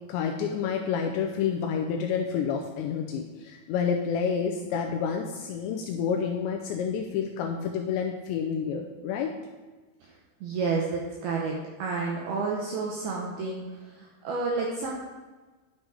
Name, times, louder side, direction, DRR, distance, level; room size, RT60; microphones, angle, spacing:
voice 1, 0.1-9.3, left 6 dB, 90° left, 3 dB, 2.6 m, -29 dB
voice 2, 10.4-13.6 14.0-14.9, right 4 dB, 80° right, -2 dB, 2.2 m, -30 dB
11.0 x 6.4 x 4.9 m, 1.3 s
omnidirectional pair, 5.7 m